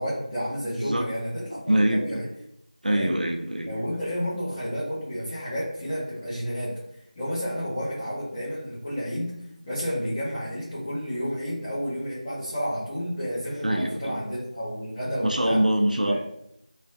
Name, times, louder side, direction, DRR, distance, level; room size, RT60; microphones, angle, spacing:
voice 1, 0.0-2.2 2.9-3.2 3.7-6.7 7.1-9.3 9.6-15.6 16.0-16.2, equal, 10° left, -11 dB, 0.4 m, -31 dB
voice 2, 0.8-1.1 1.7-2.2 2.8-3.7 13.6-14.2 15.2-16.2, right 1 dB, 85° right, 3 dB, 0.5 m, -24 dB
3.1 x 2.4 x 3.8 m, 0.78 s
figure-of-eight pair, 170°, 4 cm